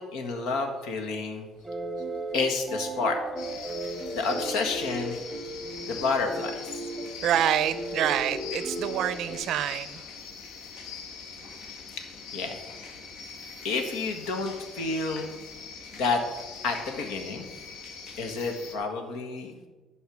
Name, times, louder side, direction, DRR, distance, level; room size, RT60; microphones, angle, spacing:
voice 1, 0.0-1.5 2.3-3.2 4.1-5.2 5.8-6.5 12.3-12.5 13.6-15.3 15.9-16.2 16.6-17.5 18.2-19.5, left 4 dB, 85° left, 4 dB, 1.7 m, -29 dB
sound 1, 1.6-9.4, right 1 dB, 5° left, 1.6 m, -35 dB
sound 2, 3.4-18.7, left 5 dB, 65° left, 1.7 m, -43 dB
voice 2, 7.2-10.0, right 10 dB, 55° right, 14 dB, 0.5 m, -27 dB
11.5 x 5.4 x 6.4 m, 1.2 s
cardioid pair, 180°, 0 cm